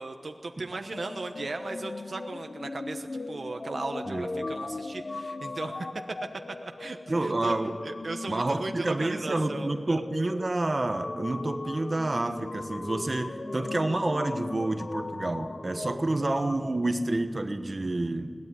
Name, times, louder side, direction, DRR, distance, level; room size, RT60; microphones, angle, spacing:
voice 1, 0.0-5.9 6.5-7.6 7.8-10.0, right 3 dB, 80° right, 5 dB, 1.1 m, -37 dB
sound 1, 0.9-16.6, left 2 dB, 65° left, 0.6 m, -38 dB
voice 2, 7.1-7.8 8.3-18.3, right 2 dB, 50° right, 7 dB, 1.2 m, -29 dB
21.5 x 18.0 x 9.3 m, 2.2 s
wide cardioid pair, 60°, 0 cm